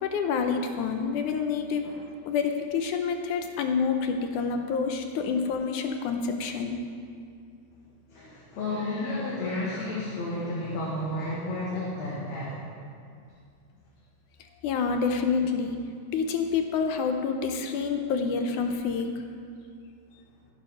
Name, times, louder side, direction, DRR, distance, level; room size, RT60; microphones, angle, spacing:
voice 1, 0.0-1.9 2.3-6.8 14.6-15.8 16.1-19.1, left 5 dB, 85° left, 5 dB, 2.4 m, -28 dB
voice 2, 8.1-12.7, left 1 dB, 65° left, -7 dB, 3.1 m, -32 dB
16.0 x 7.4 x 5.9 m, 2.3 s
omnidirectional pair, 3.4 m